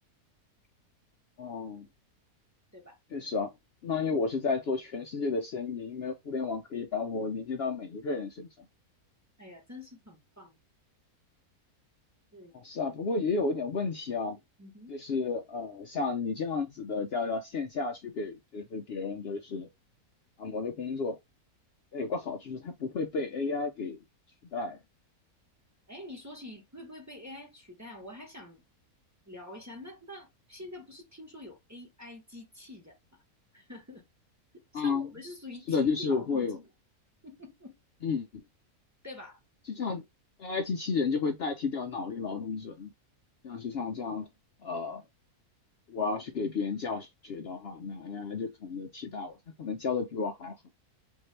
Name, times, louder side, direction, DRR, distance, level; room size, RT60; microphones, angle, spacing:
voice 1, 1.4-1.9 3.1-3.5 3.8-8.7 12.5-14.4 14.9-19.7 20.4-21.2 21.9-24.0 24.5-24.8 34.7-35.1 35.7-36.6 38.0-38.4 39.6-40.0 40.4-42.9 43.4-44.3 44.6-45.0 45.9-50.6, left 4 dB, 70° left, 0.6 m, -32 dB
voice 2, 9.4-10.6 12.3-12.5 14.6-14.9 25.9-28.6 29.3-33.2 33.5-34.0 34.5-36.5 37.2-37.8 39.0-39.4, left 1 dB, 15° right, 0.9 m, -46 dB
3.6 x 2.6 x 3.2 m
omnidirectional pair, 1.6 m